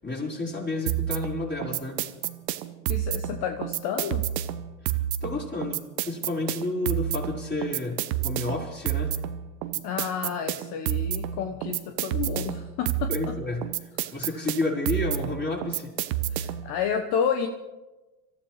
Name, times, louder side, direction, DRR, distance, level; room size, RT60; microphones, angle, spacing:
voice 1, 0.0-2.0 4.8-9.2 13.1-15.9, left 2 dB, 20° left, -3 dB, 5.0 m, -31 dB
sound 1, 0.9-16.7, right 12 dB, 80° right, 1.0 m, -30 dB
voice 2, 2.9-4.2 9.8-13.4 16.3-17.5, left 7 dB, 50° left, 5 dB, 1.3 m, -30 dB
26.5 x 14.0 x 3.3 m, 1.2 s
hypercardioid pair, 95°, 48 cm